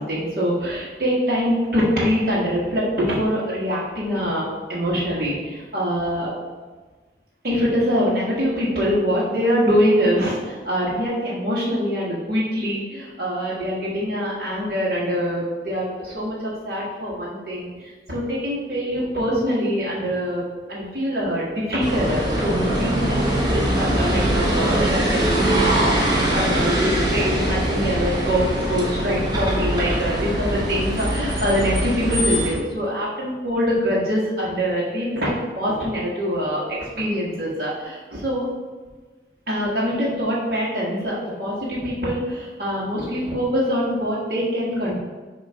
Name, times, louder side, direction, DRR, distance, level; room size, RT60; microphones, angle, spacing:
voice 1, 0.0-6.3 7.4-20.4 20.7-38.5 39.5-45.0, equal, 55° right, -7 dB, 1.7 m, -24 dB
sound 1, 21.8-32.5, right 1 dB, 25° right, 1.1 m, -22 dB
6.5 x 3.0 x 5.6 m, 1.3 s
head